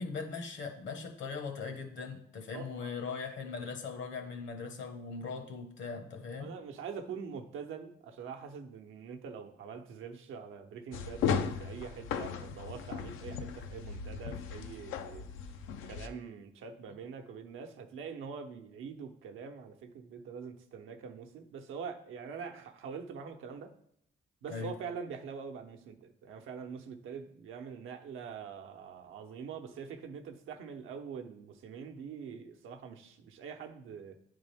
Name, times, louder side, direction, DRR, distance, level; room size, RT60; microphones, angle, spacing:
voice 1, 0.0-6.5 24.5-24.7, left 5 dB, 70° left, 5 dB, 1.3 m, -40 dB
voice 2, 2.5-2.9 6.4-11.3 11.6-15.3 15.8-23.7 24.4-34.2, right 6 dB, 85° right, 6 dB, 0.8 m, -44 dB
sound 1, 10.9-16.1, left 6 dB, 85° left, 0.5 m, -36 dB
9.7 x 3.7 x 3.5 m, 0.71 s
cardioid pair, 90°, 20 cm